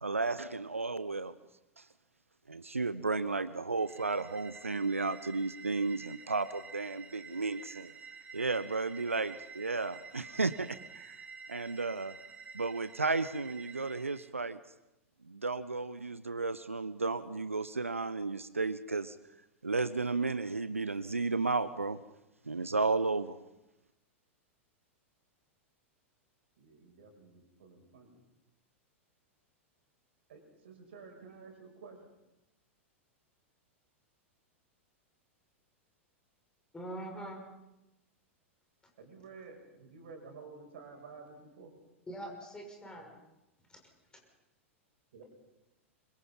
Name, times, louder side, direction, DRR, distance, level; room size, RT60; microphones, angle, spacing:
voice 1, 0.0-1.3 1.8-1.9 2.5-7.9 8.3-12.1 12.5-14.6 15.3-19.2 19.6-22.0 22.5-23.4, right 3 dB, 80° right, 15 dB, 0.7 m, -33 dB
sound 1, 3.8-14.3, right 5 dB, 20° right, 2.5 m, -50 dB
voice 2, 26.6-28.1 30.3-32.1 39.0-41.7 45.1-45.2, right 4 dB, 60° right, 4 dB, 6.0 m, -51 dB
voice 3, 36.7-37.4 42.1-43.2 43.7-43.8, right 1 dB, 10° left, 2 dB, 6.6 m, -43 dB
26.0 x 24.0 x 5.6 m, 0.93 s
figure-of-eight pair, 95°, 7 cm